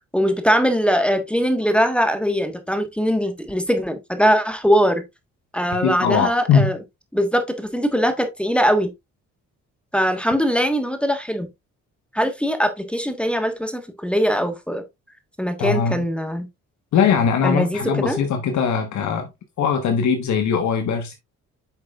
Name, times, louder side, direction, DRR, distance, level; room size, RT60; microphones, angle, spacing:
voice 1, 0.1-5.0 5.5-6.8 7.1-8.9 9.9-11.5 12.1-14.8 15.4-16.5 17.4-18.2, equal, 5° left, 1.4 m, -21 dB
voice 2, 5.8-6.7 15.6-16.0 16.9-19.3 19.6-21.1, left 6 dB, 70° left, 1.3 m, -20 dB
8.5 x 6.4 x 2.4 m
cardioid pair, 90°, 30 cm